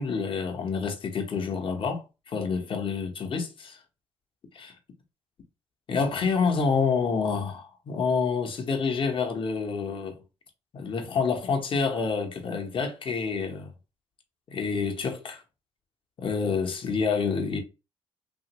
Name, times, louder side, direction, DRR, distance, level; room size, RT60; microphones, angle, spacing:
voice 1, 0.0-3.8 4.5-4.7 5.9-10.2 10.7-13.7 14.5-15.4 16.2-17.6, left 5 dB, 45° left, 0.8 m, -28 dB
2.9 x 2.5 x 2.9 m
cardioid pair, 80°, 12 cm